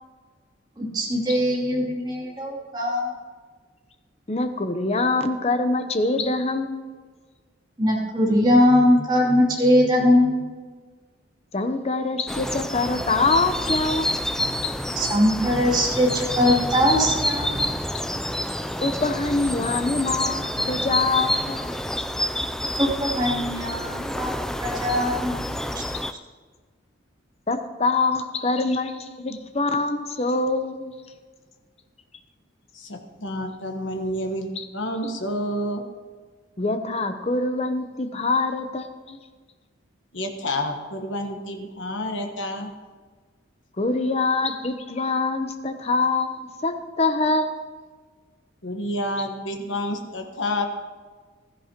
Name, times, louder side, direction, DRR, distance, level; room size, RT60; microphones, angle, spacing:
voice 1, 0.8-3.1 7.8-10.4 15.0-17.6 22.8-24.3 24.6-25.3, equal, 20° right, -4 dB, 2.7 m, -21 dB
voice 2, 4.3-6.9 11.5-14.3 14.6-14.8 17.9-18.0 18.8-21.7 25.9-26.0 27.5-31.0 34.6-34.7 36.6-39.2 43.8-47.6 49.2-49.3, left 3 dB, 30° left, 8 dB, 0.7 m, -24 dB
sound 1, 12.3-26.1, equal, 5° left, 0.3 m, -28 dB
voice 3, 32.7-35.8 40.1-42.7 48.6-50.6, left 1 dB, 70° left, 4 dB, 1.3 m, -29 dB
15.5 x 13.5 x 3.0 m, 1.4 s
head